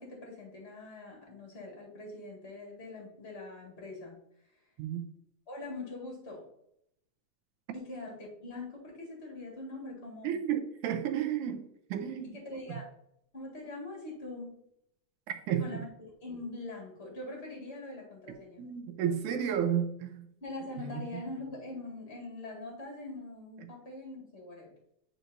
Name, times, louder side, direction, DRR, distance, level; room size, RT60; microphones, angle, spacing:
voice 1, 0.0-4.2 5.5-6.5 7.7-10.4 12.3-12.9 13.3-14.7 15.6-15.9 16.2-18.7 20.4-24.7, left 2 dB, 25° left, -1 dB, 1.4 m, -43 dB
voice 2, 10.2-11.6 11.9-12.3 15.5-15.6 18.6-20.2 20.9-21.0, right 9 dB, 80° right, 7 dB, 2.1 m, -31 dB
9.0 x 4.5 x 2.6 m, 0.75 s
omnidirectional pair, 3.6 m